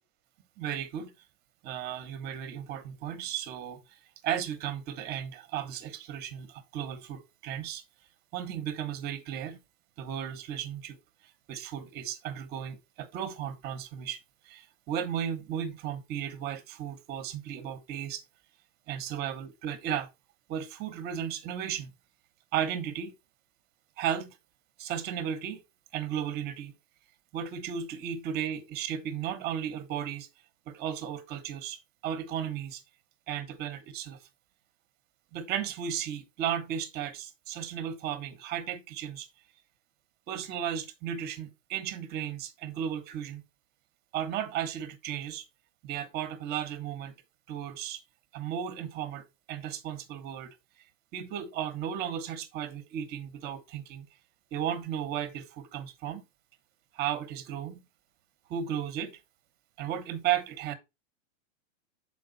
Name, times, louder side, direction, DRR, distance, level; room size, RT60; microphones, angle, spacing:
voice 1, 0.6-1.1 1.6-3.8 4.2-7.8 8.3-9.6 10.0-11.0 11.5-14.2 14.5-18.2 18.9-20.1 20.5-21.9 22.5-23.1 24.0-24.4 24.8-25.6 25.9-26.7 27.3-30.3 30.7-32.8 33.3-34.2 35.3-39.3 40.3-43.4 44.1-45.4 45.8-47.1 47.5-48.0 48.3-50.5 51.1-54.1 54.5-56.2 56.9-57.8 58.5-59.2 59.8-60.7, right 9 dB, 25° right, 1.0 m, -35 dB
6.7 x 4.7 x 3.9 m
supercardioid pair, 150°, 38 cm